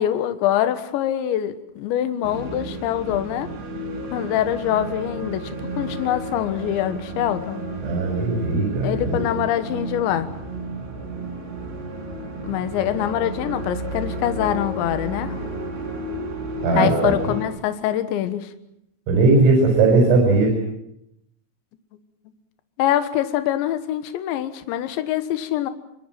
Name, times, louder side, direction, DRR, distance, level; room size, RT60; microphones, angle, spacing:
voice 1, 0.0-3.5 4.1-7.6 8.8-10.3 12.4-15.4 16.7-18.5 22.8-25.7, left 11 dB, 70° left, 10 dB, 3.4 m, -24 dB
sound 1, 2.2-17.4, right 2 dB, 55° right, 6.4 m, -32 dB
voice 2, 7.8-9.3 16.6-17.1 19.1-20.5, right 3 dB, 85° right, 0 dB, 7.9 m, -18 dB
24.0 x 24.0 x 7.6 m, 0.82 s
omnidirectional pair, 5.8 m